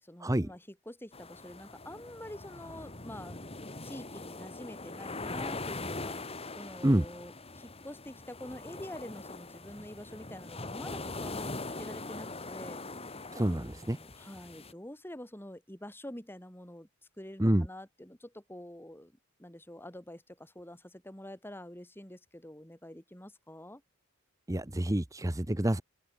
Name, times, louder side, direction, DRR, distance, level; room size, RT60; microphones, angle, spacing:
voice 1, 0.0-3.4 3.8-12.8 13.5-16.9 17.2-19.1 19.4-23.8, left 1 dB, 10° left, 3.3 m, -46 dB
sound 1, 1.1-14.7, left 2 dB, 25° left, 2.9 m, -42 dB
voice 2, 13.3-14.0 17.4-17.7 24.5-25.8, right 1 dB, 15° right, 1.0 m, -27 dB
open air
head